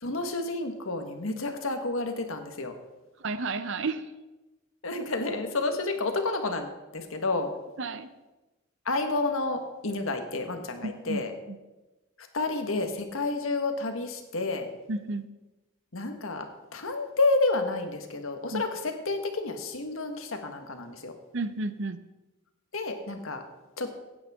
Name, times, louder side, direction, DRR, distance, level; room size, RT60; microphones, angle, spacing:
voice 1, 0.0-2.7 4.8-7.5 8.8-11.3 12.3-14.7 15.9-16.5 16.7-21.1 22.7-23.4 23.8-23.9, left 3 dB, 80° left, 6 dB, 1.4 m, -30 dB
voice 2, 3.2-4.1 7.8-8.1 10.8-11.2 11.5-11.6 14.9-15.3 18.5-18.6 21.3-22.0, right 3 dB, 60° right, 12 dB, 0.7 m, -32 dB
16.5 x 9.0 x 3.6 m, 1.1 s
head